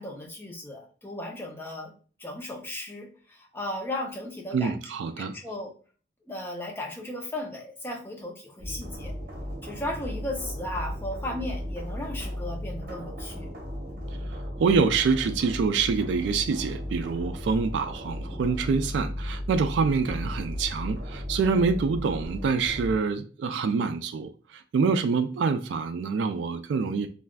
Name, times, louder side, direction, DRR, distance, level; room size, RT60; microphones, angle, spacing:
voice 1, 0.0-1.9 2.2-4.7 5.2-5.7 6.3-9.2 9.6-13.5, left 1 dB, 15° left, 0.6 m, -36 dB
voice 2, 4.5-5.4 14.6-27.1, right 5 dB, 85° right, 0.3 m, -26 dB
sound 1, 8.6-23.0, equal, 50° right, 0.8 m, -35 dB
3.2 x 2.5 x 2.2 m
head